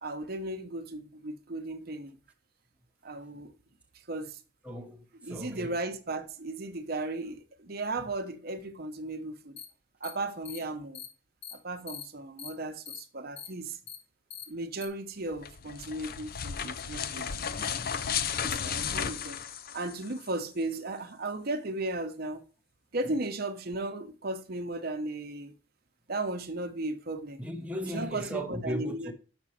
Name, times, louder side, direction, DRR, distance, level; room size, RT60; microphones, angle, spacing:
voice 1, 0.0-2.2 3.0-3.5 4.1-4.4 5.2-9.6 10.0-11.0 11.5-13.8 14.5-17.5 18.3-19.4 19.7-22.4 22.9-25.5 26.1-27.4 27.8-29.1, right 2 dB, 55° right, 0.9 m, -36 dB
voice 2, 4.6-5.8 27.4-29.1, equal, 5° right, 0.8 m, -37 dB
sound 1, 9.6-9.7 10.0-10.1 10.4-10.6 10.9-11.1 11.4-11.5 11.9-12.0 12.4-12.5 12.9-13.0 13.4-13.5 13.9-14.0 14.3-14.4 14.8-14.9, left 8 dB, 75° left, 1.9 m, -41 dB
sound 2, 15.3-20.3, left 7 dB, 50° left, 0.5 m, -34 dB
6.2 x 6.1 x 4.2 m
head